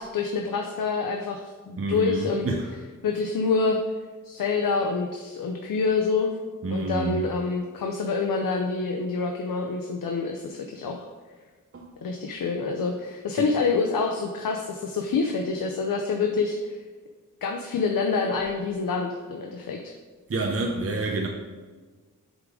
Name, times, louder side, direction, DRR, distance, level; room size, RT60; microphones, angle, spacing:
voice 1, 0.0-2.5 3.0-3.8 4.2-6.3 6.7-11.1 12.0-16.8 17.4-19.9, left 4 dB, 85° left, 3 dB, 0.7 m, -27 dB
voice 2, 1.8-2.7 6.6-7.3 11.7-11.9 13.4-13.5 20.3-21.3, right 3 dB, 45° right, 1 dB, 0.8 m, -28 dB
8.0 x 3.8 x 4.9 m, 1.4 s
cardioid pair, 65°, 33 cm